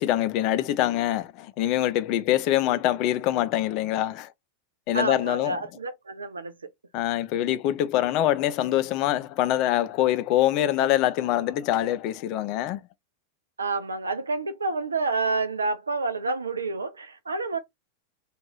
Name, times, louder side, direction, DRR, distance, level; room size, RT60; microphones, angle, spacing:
voice 1, 0.0-4.3 4.9-5.6 6.9-12.8, left 13 dB, 40° left, 0.3 m, -24 dB
voice 2, 4.9-6.5 13.6-17.6, right 3 dB, 75° right, 0.5 m, -29 dB
2.5 x 2.4 x 3.1 m
figure-of-eight pair, 90°, 0 cm